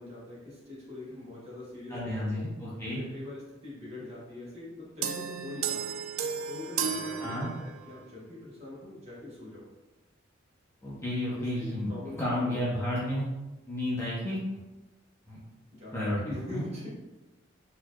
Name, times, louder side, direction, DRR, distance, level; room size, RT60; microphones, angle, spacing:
voice 1, 0.0-2.5 2.9-5.9 6.4-9.6 11.3-12.9 15.7-16.9, left 2 dB, 30° right, -8 dB, 1.3 m, -43 dB
voice 2, 1.9-3.0 7.2-7.5 10.8-11.9 12.2-13.2 13.7-14.6 15.3-15.4 15.9-16.2 16.5-16.6, left 1 dB, 15° left, -8 dB, 0.7 m, -31 dB
sound 1, 5.0-8.0, right 7 dB, 85° right, 0.3 m, -34 dB
4.1 x 2.8 x 2.3 m, 1.1 s
head